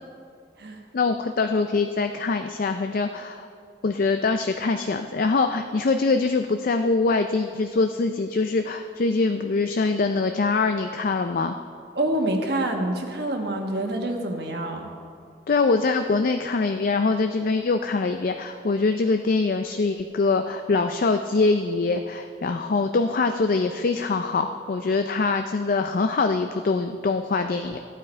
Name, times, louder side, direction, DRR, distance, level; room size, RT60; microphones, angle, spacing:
voice 1, 0.9-3.5 3.8-11.6 15.5-27.8, left 3 dB, 50° left, 7 dB, 0.4 m, -23 dB
voice 2, 11.9-14.9, right 1 dB, 60° right, 2 dB, 1.3 m, -27 dB
14.5 x 9.0 x 4.4 m, 2.3 s
head